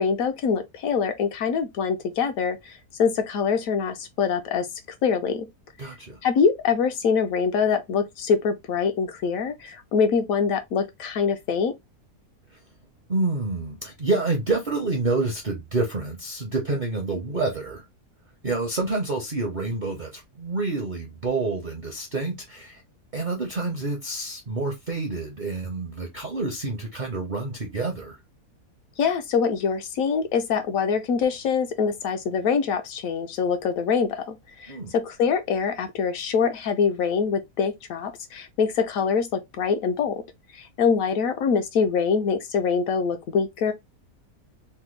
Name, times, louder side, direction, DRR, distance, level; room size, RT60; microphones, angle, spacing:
voice 1, 0.0-4.7 5.0-5.5 6.2-11.7 29.0-40.2 40.5-43.7, left 6 dB, 70° left, 1.0 m, -24 dB
voice 2, 5.8-6.2 12.5-12.6 13.1-17.9 18.4-22.8 23.1-28.2 34.7-34.9, right 3 dB, 50° right, 0.5 m, -28 dB
3.3 x 2.1 x 3.0 m
omnidirectional pair, 1.6 m